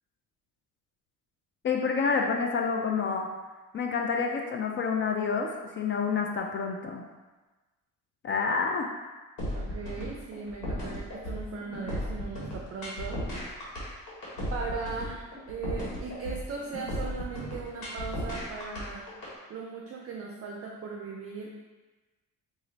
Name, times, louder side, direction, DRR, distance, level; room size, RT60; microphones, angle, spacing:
voice 1, 1.6-3.3 3.7-7.0 8.2-8.9, left 5 dB, 35° left, 2 dB, 0.4 m, -28 dB
sound 1, 9.4-19.3, equal, 80° left, 1.4 m, -35 dB
voice 2, 9.5-13.2 14.5-19.0 19.5-21.6, right 4 dB, 40° right, -1 dB, 0.5 m, -38 dB
3.0 x 2.5 x 3.9 m, 1.2 s
cardioid pair, 95°, 35 cm